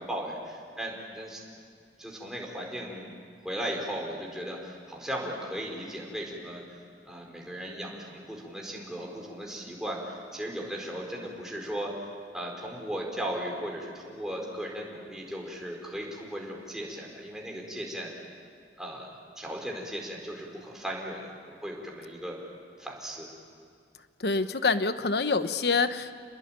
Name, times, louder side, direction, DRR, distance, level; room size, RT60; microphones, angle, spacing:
voice 1, 0.0-1.4 2.0-3.1 3.4-6.6 7.0-11.9 12.3-18.1 18.8-22.4 22.8-23.3, equal, 5° right, -1 dB, 4.7 m, -37 dB
voice 2, 24.2-26.2, left 4 dB, 65° left, 11 dB, 1.0 m, -26 dB
29.5 x 21.0 x 9.0 m, 2.3 s
head